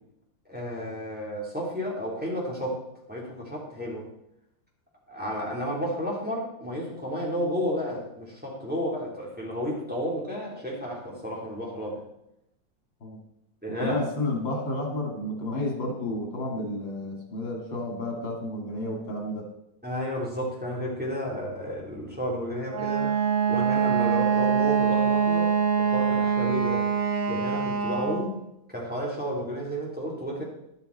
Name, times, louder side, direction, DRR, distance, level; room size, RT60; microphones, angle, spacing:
voice 1, 0.5-2.8 3.1-4.1 5.1-12.0 13.6-14.0 19.8-23.2 23.5-26.9 27.3-28.4 28.7-30.4, equal, 5° right, -4 dB, 3.6 m, -32 dB
voice 2, 13.8-19.4, left 2 dB, 85° left, 1 dB, 3.3 m, -31 dB
Wind instrument woodwind instrument, 22.7-28.4, right 6 dB, 50° right, 1.5 m, -24 dB
12.5 x 12.0 x 4.3 m, 0.82 s
omnidirectional pair, 2.0 m